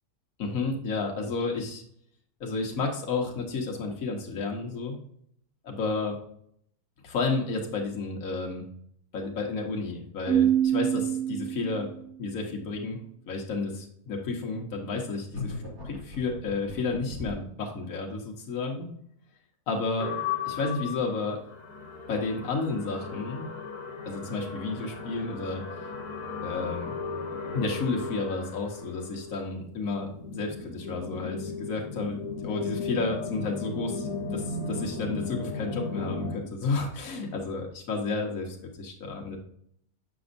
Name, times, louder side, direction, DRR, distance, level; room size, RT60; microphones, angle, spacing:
voice 1, 0.4-1.8 2.4-5.0 5.6-6.2 7.0-8.6 9.1-11.9 12.2-13.0 13.3-15.5 15.8-18.9 19.7-20.1 20.4-21.4 22.1-23.5 24.0-25.6 26.4-27.0 27.5-39.4, left 3 dB, 65° left, 0 dB, 1.5 m, -31 dB
Keyboard (musical), 10.2-12.1, right 10 dB, 80° right, 2.0 m, -25 dB
sound 1, 15.3-17.5, left 3 dB, 45° right, 3.0 m, -39 dB
sound 2, 20.0-36.4, left 4 dB, 85° left, 1.5 m, -36 dB
7.5 x 6.0 x 2.6 m, 0.67 s
omnidirectional pair, 1.6 m